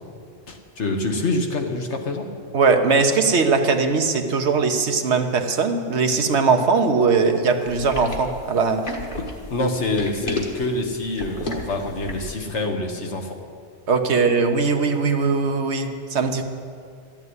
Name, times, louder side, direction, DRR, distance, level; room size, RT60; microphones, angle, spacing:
voice 1, 0.5-2.3 9.5-13.3, left 2 dB, 75° left, 3 dB, 1.6 m, -26 dB
voice 2, 2.5-8.8 13.9-16.4, right 4 dB, 70° right, 5 dB, 1.2 m, -20 dB
sound 1, 7.7-12.4, left 2 dB, 45° left, 1.7 m, -32 dB
13.5 x 7.4 x 9.6 m, 2.3 s
omnidirectional pair, 1.2 m